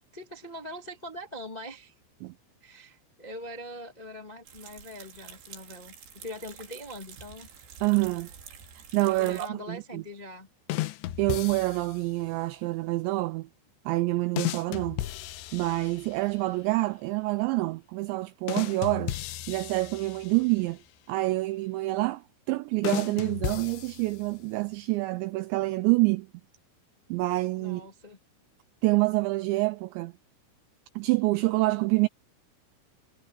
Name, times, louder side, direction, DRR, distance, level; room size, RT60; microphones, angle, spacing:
voice 1, 0.1-1.9 2.6-7.5 9.2-10.5 27.6-28.2, left 1 dB, 50° left, 0.5 m, -42 dB
sound 1, 4.4-9.5, right 7 dB, 60° right, 4.9 m, -48 dB
voice 2, 7.8-8.3 8.8-10.0 11.2-13.5 13.9-15.0 15.5-19.1 19.5-20.8 21.1-26.3 27.1-27.8 28.8-30.1 31.0-32.1, right 21 dB, 85° right, 2.5 m, -27 dB
sound 2, 10.7-12.1 14.4-16.3 18.5-20.6 22.8-24.5, left 14 dB, 75° left, 2.9 m, -34 dB
omnidirectional pair, 5.8 m